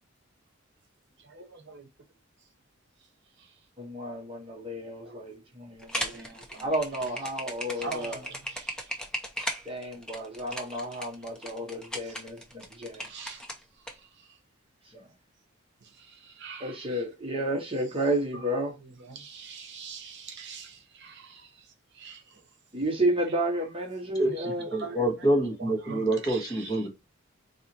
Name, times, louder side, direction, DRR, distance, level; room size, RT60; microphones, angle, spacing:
voice 1, 1.3-1.8 5.8-6.6 7.8-8.3 13.1-13.4 16.4-17.0 18.3-18.5 18.8-21.3 22.0-22.2 24.4-25.3 25.6-26.8, right 4 dB, 60° right, 0.9 m, -42 dB
voice 2, 3.8-8.3 9.7-13.1 14.9-15.1 16.6-18.7 22.7-24.7, right 1 dB, 30° right, 0.8 m, -31 dB
sound 1, 5.8-13.9, equal, 5° left, 0.6 m, -37 dB
voice 3, 24.7-26.9, right 1 dB, 20° left, 1.4 m, -26 dB
4.0 x 2.8 x 2.8 m
head